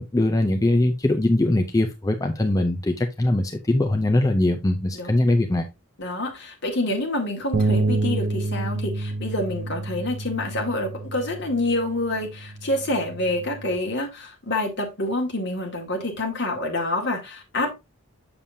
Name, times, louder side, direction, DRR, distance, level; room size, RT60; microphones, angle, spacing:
voice 1, 0.0-5.7, left 1 dB, 15° left, 0.5 m, -21 dB
voice 2, 6.0-17.7, left 1 dB, 55° left, 2.0 m, -27 dB
sound 1, 7.5-13.8, right 2 dB, 45° right, 0.5 m, -28 dB
7.3 x 6.8 x 2.7 m
head